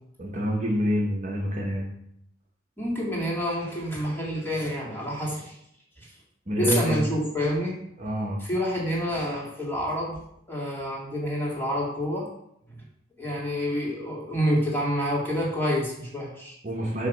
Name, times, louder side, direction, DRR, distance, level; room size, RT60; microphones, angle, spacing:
voice 1, 0.2-1.8 6.5-7.0 8.0-8.4 16.6-17.1, equal, 40° right, -2 dB, 1.1 m, -27 dB
voice 2, 2.8-5.6 6.0-6.1 6.6-7.7 8.4-10.2 10.5-12.3 13.2-16.6, equal, 10° left, -4 dB, 2.3 m, -28 dB
8.1 x 3.1 x 6.1 m, 0.74 s
head